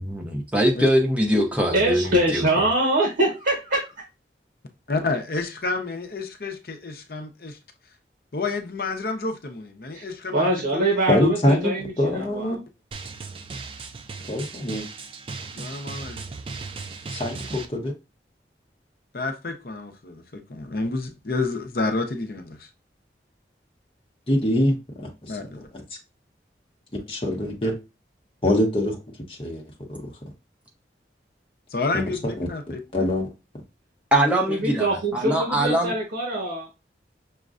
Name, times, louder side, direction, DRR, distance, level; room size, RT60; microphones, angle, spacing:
voice 1, 0.0-2.4 34.1-35.9, equal, 10° right, 0.7 m, -22 dB
voice 2, 1.7-3.8 9.9-10.0 10.3-12.6 34.5-36.7, right 1 dB, 85° right, 1.0 m, -24 dB
voice 3, 4.9-7.6 8.3-11.1 15.5-16.2 19.1-22.7 25.3-25.7 31.7-33.1, left 3 dB, 55° left, 0.7 m, -30 dB
voice 4, 11.1-12.6 14.3-14.8 17.1-17.9 24.3-25.3 27.1-27.7 28.4-29.0 29.3-29.6 29.9-30.0 32.9-33.3, left 1 dB, 30° left, 0.9 m, -23 dB
Drum, 12.9-17.7, right 4 dB, 30° right, 0.3 m, -37 dB
6.2 x 2.2 x 2.4 m
head